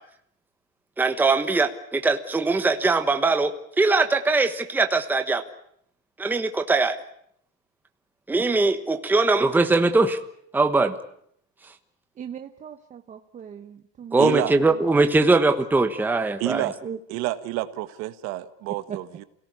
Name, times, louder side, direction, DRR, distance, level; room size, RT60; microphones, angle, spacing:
voice 1, 1.0-5.4 6.2-7.0 8.3-10.2 10.5-11.0 14.1-16.7, right 3 dB, 5° right, 7 dB, 1.2 m, -21 dB
voice 2, 12.2-14.2 14.6-14.7 16.8-17.0 18.9-19.0, right 8 dB, 25° right, 6 dB, 1.0 m, -38 dB
voice 3, 14.2-14.5 16.4-16.8 17.1-19.2, right 16 dB, 55° right, 12 dB, 1.6 m, -29 dB
28.5 x 18.0 x 9.7 m, 0.70 s
cardioid pair, 170°, 31 cm